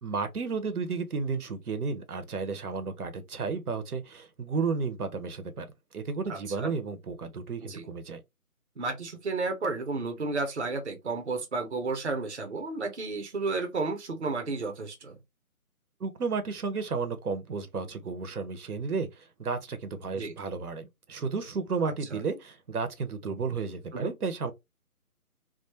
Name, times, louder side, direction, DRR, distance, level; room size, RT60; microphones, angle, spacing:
voice 1, 0.0-5.7 5.9-8.2 16.0-24.5, right 4 dB, 80° right, 0.8 m, -33 dB
voice 2, 6.3-6.7 7.6-7.9 8.8-15.2 20.1-20.3 21.8-22.2 23.9-24.1, right 3 dB, 50° right, 0.6 m, -32 dB
2.3 x 2.1 x 2.9 m
figure-of-eight pair, 175°, 44 cm